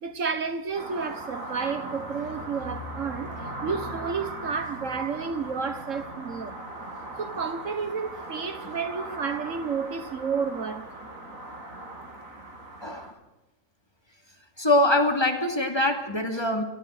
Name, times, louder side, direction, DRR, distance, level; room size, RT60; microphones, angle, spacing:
voice 1, 0.0-6.6 7.2-11.1, right 5 dB, 70° right, 1.6 m, -31 dB
sound 1, 0.7-13.1, right 1 dB, 85° right, 3.7 m, -39 dB
voice 2, 14.6-16.6, left 1 dB, 20° left, 2.7 m, -23 dB
30.0 x 13.5 x 6.6 m
omnidirectional pair, 1.4 m